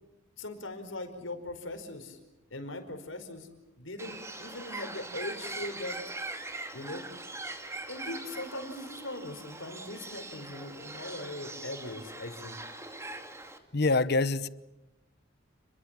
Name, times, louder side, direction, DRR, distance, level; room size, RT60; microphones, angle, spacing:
voice 1, 0.4-2.2 2.5-6.0 6.7-7.1 7.9-12.6, left 2 dB, 80° left, 4.9 m, -40 dB
Bird, 4.0-13.6, right 2 dB, 15° right, 2.4 m, -42 dB
voice 2, 13.7-14.5, left 3 dB, 55° left, 1.0 m, -25 dB
29.5 x 22.5 x 7.6 m
head